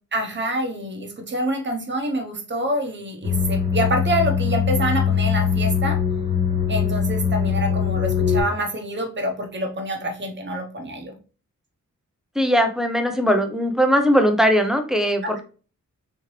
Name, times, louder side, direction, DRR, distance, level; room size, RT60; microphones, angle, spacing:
voice 1, 0.1-6.0 6.7-11.1 15.2-15.4, right 1 dB, 35° right, 3 dB, 0.8 m, -26 dB
sound 1, 3.2-8.4, left 7 dB, 20° right, 1.2 m, -22 dB
voice 2, 12.4-15.4, equal, ahead, 5 dB, 0.5 m, -19 dB
3.5 x 3.1 x 3.1 m, 0.37 s
wide cardioid pair, 160°, 32 cm